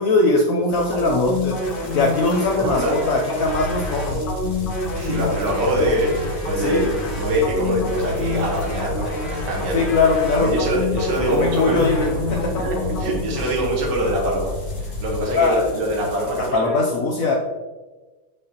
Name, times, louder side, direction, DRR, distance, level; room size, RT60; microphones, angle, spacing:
voice 1, 0.0-1.6 1.9-4.2 6.6-6.9 9.7-10.5 11.3-12.6 15.3-15.6 16.5-17.3, left 3 dB, 80° left, 1 dB, 0.7 m, -20 dB
sound 1, 0.7-16.5, left 2 dB, 35° left, 0.7 m, -38 dB
sound 2, 0.9-13.5, left 2 dB, 65° left, 2.0 m, -28 dB
voice 2, 2.6-3.0 4.9-10.0 10.4-11.9 12.6-12.7 13.0-14.5 15.0-16.8, equal, 65° right, -3 dB, 1.9 m, -24 dB
sound 3, 3.4-15.2, left 1 dB, 45° right, 1.2 m, -31 dB
6.3 x 5.5 x 2.8 m, 1.3 s
omnidirectional pair, 2.1 m